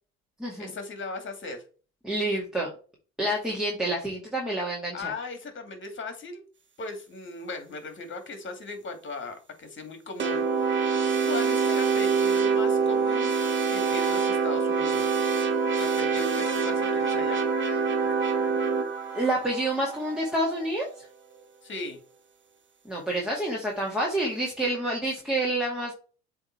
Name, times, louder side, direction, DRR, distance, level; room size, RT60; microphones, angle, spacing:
voice 1, 0.6-1.6 4.9-6.5 6.8-10.9 11.2-13.3 13.7-15.2 15.8-17.4 21.6-22.0, left 3 dB, 35° left, 6 dB, 2.3 m, -38 dB
voice 2, 2.0-2.7 3.2-5.1 19.1-21.1 22.9-25.9, right 1 dB, ahead, -3 dB, 2.3 m, -28 dB
sound 1, 10.2-20.7, right 5 dB, 35° right, 1.8 m, -25 dB
7.8 x 3.5 x 4.6 m, 0.37 s
supercardioid pair, 75°, 32 cm